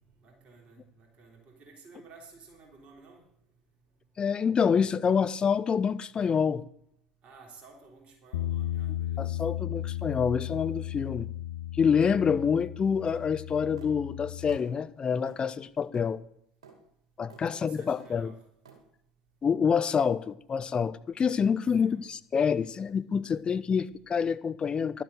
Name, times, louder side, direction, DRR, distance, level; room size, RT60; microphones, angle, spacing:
voice 1, 0.2-3.3 7.2-9.3 17.5-18.4 21.8-22.1, right 4 dB, 40° right, 3.3 m, -53 dB
voice 2, 4.2-6.6 9.2-11.3 11.8-16.2 17.2-18.3 19.4-25.0, left 6 dB, 30° left, 0.6 m, -27 dB
Bass guitar, 8.3-14.6, left 13 dB, 75° left, 0.5 m, -35 dB
sound 1, 13.1-13.3 13.8-14.0 14.5-14.7 15.3-15.4 15.9-16.1 16.6-16.8 17.3-17.5 18.0-18.2 18.6-18.8, right 5 dB, 75° right, 2.3 m, -51 dB
11.5 x 7.7 x 6.7 m
figure-of-eight pair, 65°, 3 cm